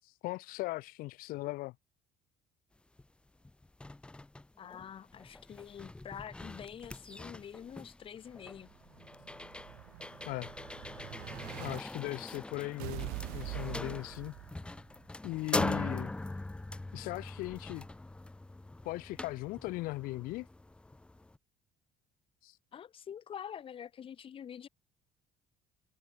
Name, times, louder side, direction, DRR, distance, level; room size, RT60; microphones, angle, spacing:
voice 1, 0.0-1.7 10.3-10.5 11.6-14.3 15.2-16.1 16.9-17.9 18.8-20.5 22.4-22.6, left 20 dB, 70° left, 0.6 m, -38 dB
sound 1, 3.0-3.1 3.4-21.4, left 2 dB, 5° left, 0.4 m, -42 dB
voice 2, 4.6-8.7 22.7-24.7, left 8 dB, 35° left, 0.8 m, -46 dB
Explosion, 8.4-11.8 12.8-14.8, right 26 dB, 85° right, 1.7 m, -44 dB
cardioid pair, 100°, 15 cm